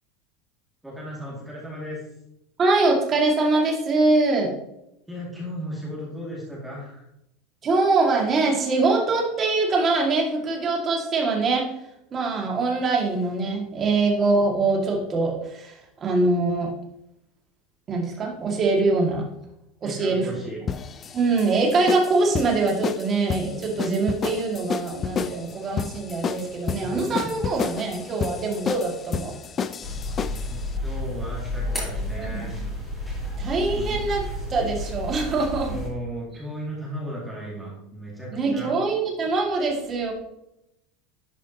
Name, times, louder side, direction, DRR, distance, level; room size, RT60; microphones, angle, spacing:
voice 1, 0.8-2.0 5.1-7.1 19.8-20.6 30.5-32.5 33.7-34.1 35.7-38.7, equal, 5° right, -6 dB, 2.3 m, -35 dB
voice 2, 2.6-4.5 7.6-11.7 12.1-15.7 16.0-16.7 17.9-19.2 19.8-20.3 21.1-29.3 32.2-32.3 33.4-34.2 34.5-35.7 38.3-40.1, right 3 dB, 30° right, 0 dB, 2.1 m, -23 dB
sound 1, 20.7-30.6, left 7 dB, 30° left, 0.4 m, -30 dB
sound 2, 29.8-35.9, left 1 dB, 10° left, 2.9 m, -31 dB
11.0 x 5.0 x 2.9 m, 0.82 s
supercardioid pair, 125°, 0 cm